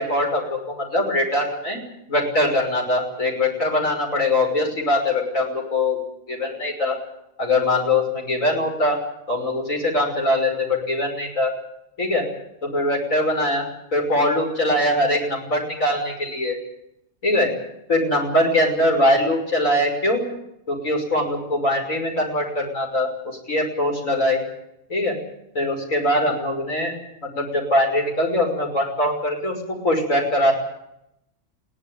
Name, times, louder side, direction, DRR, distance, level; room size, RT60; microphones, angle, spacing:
voice 1, 0.0-1.8 2.1-6.0 6.3-7.0 7.4-9.0 9.3-11.5 12.0-12.2 12.6-13.6 13.9-16.6 17.2-17.5 17.9-20.2 20.7-24.4 24.9-25.2 25.5-26.9 27.2-30.5, left 1 dB, 85° left, 1 dB, 6.3 m, -22 dB
22.0 x 17.0 x 9.4 m, 0.81 s
omnidirectional pair, 1.3 m